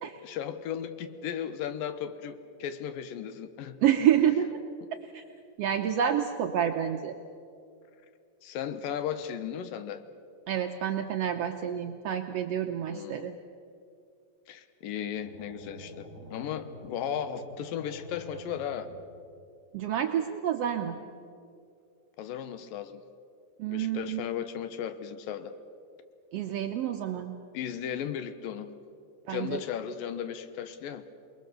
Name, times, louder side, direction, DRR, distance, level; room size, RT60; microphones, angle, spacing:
voice 1, 0.2-3.8 8.4-10.0 12.9-13.3 14.5-18.9 22.2-23.0 23.7-25.5 27.5-28.7 29.3-31.0, left 9 dB, 80° left, 11 dB, 2.8 m, -36 dB
voice 2, 3.8-4.6 5.1-5.2 5.6-7.1 10.5-13.3 19.7-21.0 23.6-24.2 26.3-27.3 29.3-29.6, right 9 dB, 85° right, 5 dB, 1.4 m, -28 dB
sound 1, 15.1-19.4, left 1 dB, 60° left, 9.3 m, -47 dB
28.5 x 20.5 x 6.8 m, 2.5 s
omnidirectional pair, 4.0 m